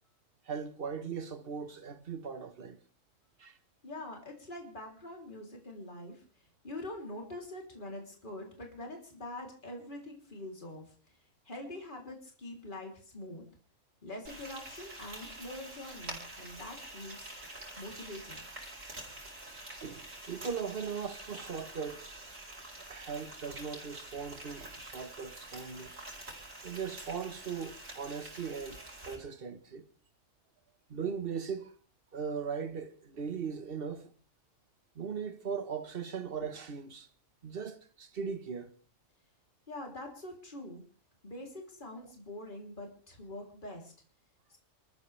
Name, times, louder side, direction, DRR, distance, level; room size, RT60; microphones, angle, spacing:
voice 1, 0.5-2.8 3.4-3.6 19.8-22.1 22.8-25.9 26.6-29.8 30.9-31.7 32.1-34.1 34.9-37.1 37.4-38.7, right 6 dB, 50° right, 1.4 m, -39 dB
voice 2, 3.8-11.2 11.5-13.4 14.0-17.4 17.8-18.4 39.7-40.8 41.2-43.9 44.5-44.6, left 1 dB, 40° left, 3.5 m, -44 dB
Frying (food), 14.2-29.1, right 1 dB, 75° right, 5.1 m, -47 dB
28.5 x 14.0 x 3.3 m
omnidirectional pair, 1.3 m